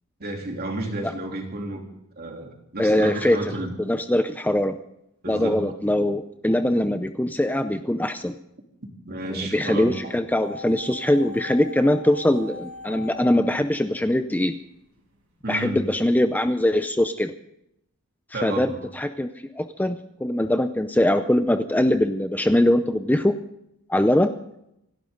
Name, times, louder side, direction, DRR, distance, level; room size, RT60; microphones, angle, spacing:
voice 1, 0.2-1.8 2.2-3.7 5.2-5.7 9.1-10.1 15.4-15.8 18.3-18.8, right 1 dB, 45° right, 2 dB, 3.4 m, -31 dB
voice 2, 2.8-3.4 3.9-4.8 5.3-8.4 9.3-14.6 15.5-17.3 18.3-19.3 19.6-23.4 23.9-24.3, left 1 dB, 10° left, 9 dB, 0.6 m, -22 dB
sound 1, 10.4-14.5 14.8-14.9, left 2 dB, 70° right, 6.6 m, -40 dB
27.0 x 12.5 x 3.9 m, 0.79 s
head